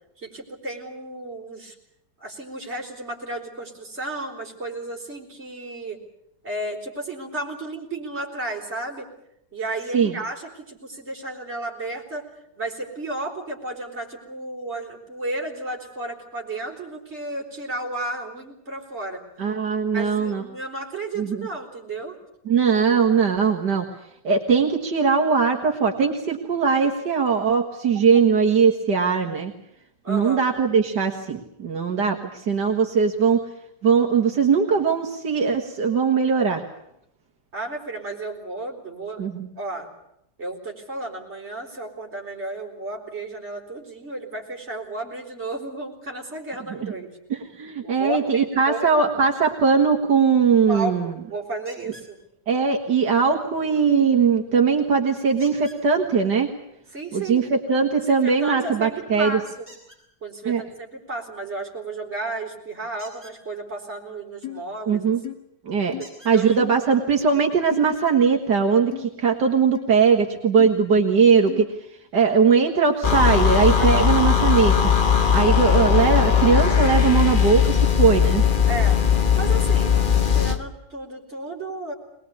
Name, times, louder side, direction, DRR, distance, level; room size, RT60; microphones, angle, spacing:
voice 1, 0.2-1.7 2.2-6.0 6.4-9.1 9.5-12.3 12.6-19.2 19.9-22.2 30.0-30.5 37.5-39.3 39.6-39.9 40.4-47.1 47.8-48.9 50.7-52.2 56.9-57.5 58.0-59.7 60.2-65.1 66.0-66.1 66.3-66.6 73.8-74.1 78.7-79.0 79.4-81.9, right 2 dB, 40° right, -1 dB, 4.7 m, -33 dB
voice 2, 19.4-20.4 21.2-21.5 22.5-23.9 24.2-29.5 30.1-33.4 33.8-36.6 39.2-39.5 46.7-46.9 47.3-51.1 52.5-56.5 57.1-59.4 60.5-60.6 64.9-65.2 65.7-65.9 66.3-71.7 72.1-74.9 75.3-78.4, right 5 dB, 80° right, 2 dB, 2.3 m, -20 dB
sound 1, 51.7-52.1 55.4-55.8 59.6-60.0 62.9-63.4 65.0-65.1 66.0-66.3 67.3-67.4 67.9-68.0, equal, 5° right, 6.9 m, -46 dB
sound 2, 64.4-64.6 65.2-65.4 65.9-66.1 66.6-66.8 67.7-67.9 68.9-69.1 69.7-69.9 70.6-70.7 71.5-71.7, left 15 dB, 70° left, 2.0 m, -34 dB
sound 3, 73.0-80.6, left 7 dB, 35° left, 1.2 m, -19 dB
22.0 x 20.5 x 8.5 m, 0.76 s
omnidirectional pair, 1.8 m